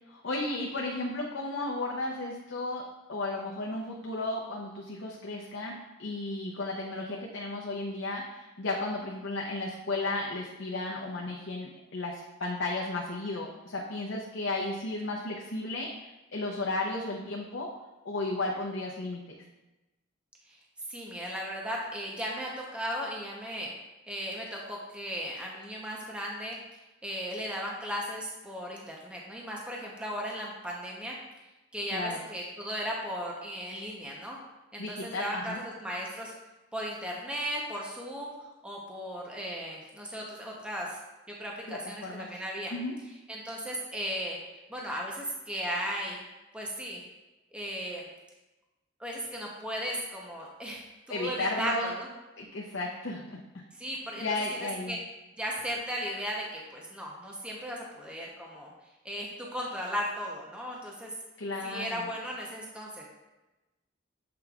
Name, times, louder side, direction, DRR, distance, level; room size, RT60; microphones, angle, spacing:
voice 1, 0.1-17.7 18.0-19.4 31.9-32.2 34.8-35.6 41.7-42.3 42.7-43.0 51.1-51.9 52.4-53.6 54.2-55.0 61.4-62.1, left 2 dB, 70° left, -2 dB, 0.7 m, -34 dB
voice 2, 20.9-23.7 24.1-26.6 27.0-31.2 31.7-34.4 34.7-36.3 36.7-38.3 38.6-41.0 41.4-42.7 43.3-44.4 44.7-46.2 46.5-47.0 47.5-48.1 49.0-52.1 53.8-54.3 54.5-55.0 55.4-58.7 59.0-61.1 61.6-63.0, equal, 5° right, -3 dB, 0.8 m, -36 dB
7.6 x 5.1 x 2.4 m, 1.1 s
head